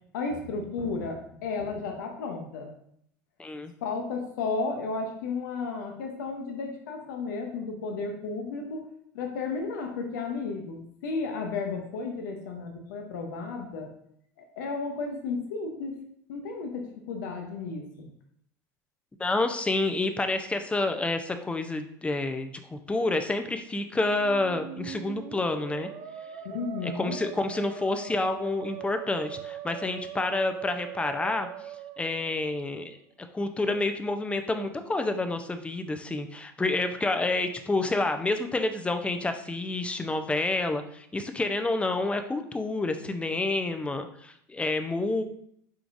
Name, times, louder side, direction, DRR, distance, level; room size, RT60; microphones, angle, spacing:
voice 1, 0.0-2.7 3.8-8.9 9.1-13.9 14.4-16.0 16.3-18.1 26.4-27.2, left 4 dB, 75° left, 3 dB, 0.8 m, -33 dB
voice 2, 3.4-3.7 19.2-25.9 26.8-31.5 32.0-33.0 33.3-45.2, left 2 dB, 10° left, 7 dB, 0.5 m, -29 dB
Musical instrument, 24.1-32.8, right 9 dB, 50° right, 0.5 m, -41 dB
4.5 x 3.7 x 2.5 m, 0.70 s
hypercardioid pair, 85°, 10 cm